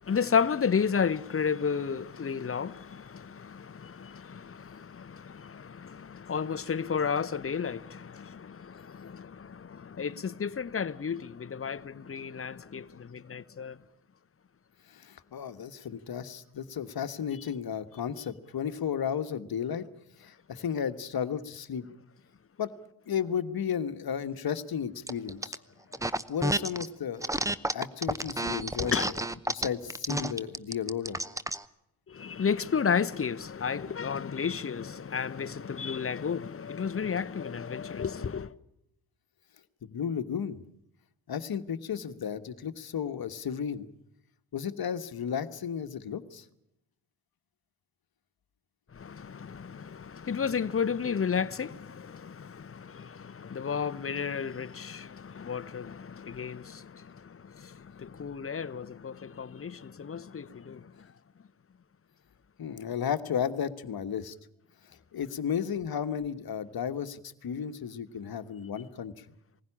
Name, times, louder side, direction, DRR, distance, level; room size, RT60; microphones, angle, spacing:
voice 1, 0.0-13.8 25.9-26.0 28.8-29.1 32.1-38.5 48.9-61.1, left 6 dB, 30° left, 0.9 m, -32 dB
voice 2, 14.9-19.8 20.2-21.8 22.6-22.7 23.1-25.6 26.3-27.3 27.7-28.9 29.5-31.2 39.8-40.6 41.3-43.9 44.5-46.4 62.6-64.3 65.1-69.2, left 8 dB, 50° left, 1.4 m, -33 dB
sound 1, 25.1-25.6 25.9-26.9 27.2-31.6, right 1 dB, 5° right, 0.8 m, -30 dB
20.0 x 16.0 x 10.0 m
supercardioid pair, 50°, 47 cm